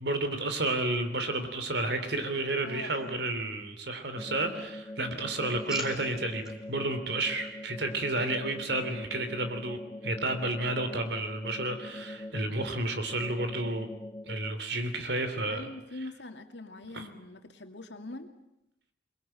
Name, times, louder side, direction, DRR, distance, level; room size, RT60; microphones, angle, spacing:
voice 1, 0.0-13.9 14.3-15.7 16.9-17.1, right 2 dB, 65° right, 8 dB, 3.2 m, -31 dB
voice 2, 2.6-3.2 15.5-18.3, left 2 dB, 75° left, 6 dB, 2.4 m, -43 dB
sound 1, 2.6-3.7 4.1-4.8 5.1-6.5 7.1-7.4, left 1 dB, 5° right, 3.7 m, -47 dB
sound 2, 4.2-14.5, left 1 dB, 20° left, 1.6 m, -43 dB
23.0 x 22.0 x 9.0 m, 0.83 s
head